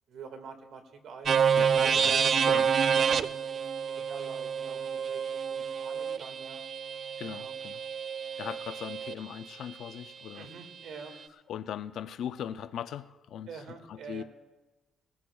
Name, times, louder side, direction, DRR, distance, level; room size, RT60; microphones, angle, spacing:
voice 1, 0.1-2.4 2.9-6.6 7.2-7.6 10.3-11.4 13.5-14.2, right 5 dB, 75° right, 5 dB, 1.8 m, -47 dB
sound 1, 1.3-9.1, right 7 dB, 55° right, 0.5 m, -28 dB
voice 2, 1.6-2.2 2.5-2.8 7.2-7.8 8.4-10.5 11.5-14.2, left 9 dB, 75° left, 13 dB, 0.5 m, -39 dB
20.5 x 16.0 x 2.3 m, 1.2 s
cardioid pair, 90°, 0 cm